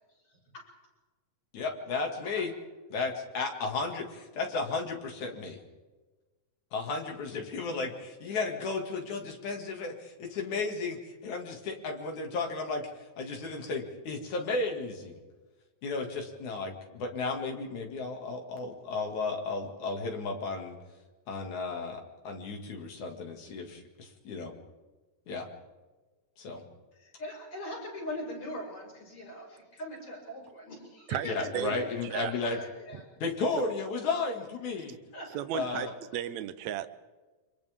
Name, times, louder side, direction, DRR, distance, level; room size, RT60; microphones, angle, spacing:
voice 1, 1.5-2.5 2.9-5.6 6.7-15.2 15.8-20.8 21.3-24.5 25.3-25.5 26.4-26.6 31.2-32.6 33.2-35.0 35.5-35.9, left 3 dB, 75° left, 3.7 m, -34 dB
voice 2, 26.9-33.0 35.1-35.3, left 1 dB, 50° left, 7.4 m, -41 dB
voice 3, 31.5-32.3 35.3-36.9, right 11 dB, 75° right, 2.1 m, -34 dB
29.5 x 25.0 x 3.6 m
omnidirectional pair, 3.4 m